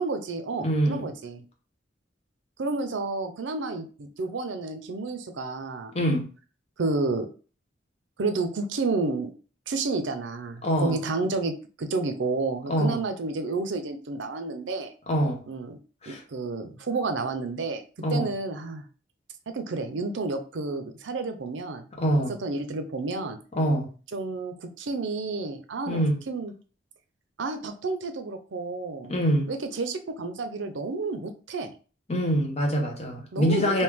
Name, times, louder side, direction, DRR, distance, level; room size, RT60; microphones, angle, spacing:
voice 1, 0.0-1.4 2.6-5.9 6.8-7.3 8.2-9.3 9.7-11.5 11.8-14.9 15.5-15.8 16.1-17.8 18.1-18.9 19.5-21.9 22.4-23.4 24.1-26.5 27.4-29.2 29.5-31.7 33.3-33.8, right 3 dB, 80° right, 7 dB, 0.5 m, -30 dB
voice 2, 0.6-1.1 5.9-6.3 10.6-11.0 12.7-13.0 15.1-15.4 16.0-16.2 18.0-18.3 22.0-22.3 23.5-23.9 25.9-26.2 29.1-29.5 32.1-33.8, equal, 35° left, 1 dB, 0.9 m, -24 dB
3.3 x 2.7 x 3.5 m, 0.37 s
head